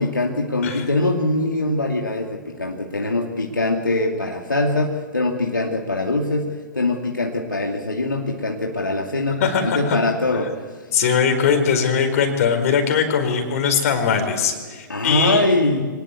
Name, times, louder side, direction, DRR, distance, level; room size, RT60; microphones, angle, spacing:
voice 1, 0.0-10.5 14.9-15.9, left 2 dB, 80° left, 1 dB, 2.5 m, -22 dB
voice 2, 9.4-10.0 10.9-15.4, left 6 dB, 50° left, 6 dB, 4.6 m, -20 dB
25.0 x 19.0 x 8.4 m, 1.5 s
figure-of-eight pair, 115°, 10 cm